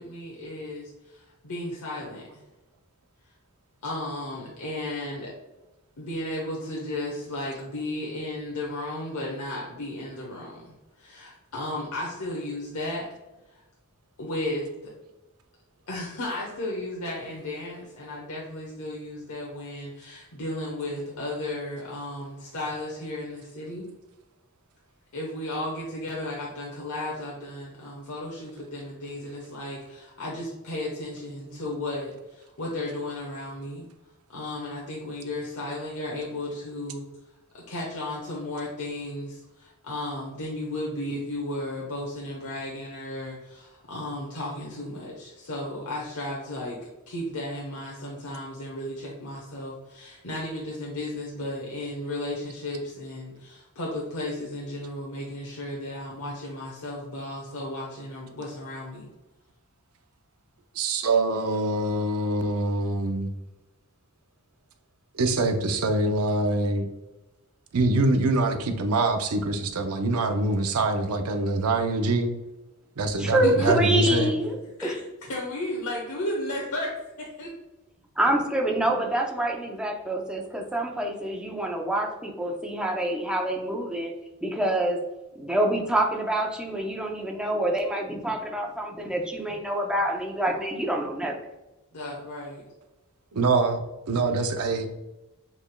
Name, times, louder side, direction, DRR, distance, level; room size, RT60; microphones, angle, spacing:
voice 1, 0.0-2.4 3.8-5.3 6.0-13.1 13.5-13.6 14.2-14.9 15.9-23.9 25.1-33.9 34.3-37.0 37.5-46.8 47.1-59.1 73.4-73.9 74.8-76.9 77.2-77.5 91.9-92.6, left 1 dB, 75° left, -4 dB, 1.0 m, -34 dB
voice 2, 60.8-63.3 65.1-66.9 67.7-72.3 73.0-74.3 93.3-93.8 94.1-94.9, right 2 dB, 75° right, 6 dB, 0.6 m, -24 dB
voice 3, 73.2-74.5 74.8-74.9 78.2-84.1 84.4-85.0 85.4-91.4, right 1 dB, 5° right, 1 dB, 0.6 m, -26 dB
7.0 x 3.4 x 2.2 m, 1.0 s
head